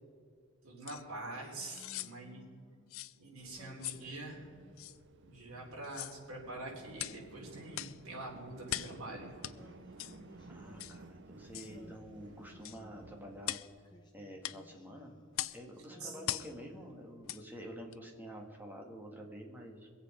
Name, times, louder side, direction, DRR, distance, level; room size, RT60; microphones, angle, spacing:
voice 1, 0.6-2.4 3.2-4.5 5.2-9.3 16.0-16.2, right 2 dB, 85° right, -1 dB, 3.6 m, -45 dB
sound 1, 0.9-1.0 1.7-2.1 2.9-3.2 3.8-4.1 4.8-5.0 5.8-6.2 7.0-7.2 7.7-8.0 8.7-9.0 9.4-9.6 10.0-10.2 10.8-11.0 11.5-11.7 12.6-12.8 13.4-13.7 14.4-14.6 15.3-15.6 16.2-16.5 17.2-17.4 17.9-18.0, left 14 dB, 70° left, 0.4 m, -40 dB
Singing, 1.5-2.9 3.6-4.9 5.5-6.8 7.5-9.0 9.5-11.3 11.7-13.4 13.8-15.5 15.9-17.5, equal, 20° left, 1.5 m, -60 dB
sound 2, 3.4-13.5, right 2 dB, 55° right, 0.7 m, -55 dB
voice 2, 10.5-13.6 14.1-15.1 15.5-19.9, equal, 10° right, 0 dB, 1.9 m, -48 dB
22.5 x 8.1 x 5.1 m, 2.2 s
head